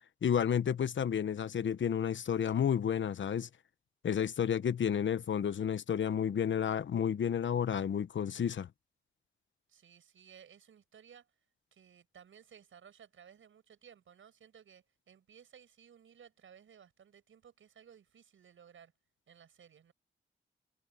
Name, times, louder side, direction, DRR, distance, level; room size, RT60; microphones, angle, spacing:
voice 1, 0.2-3.5 4.0-8.7, left 8 dB, 65° left, 1.1 m, -31 dB
voice 2, 9.7-11.3 11.7-18.9 19.3-19.9, right 8 dB, 75° right, 6.5 m, -58 dB
supercardioid pair, 50°, 21 cm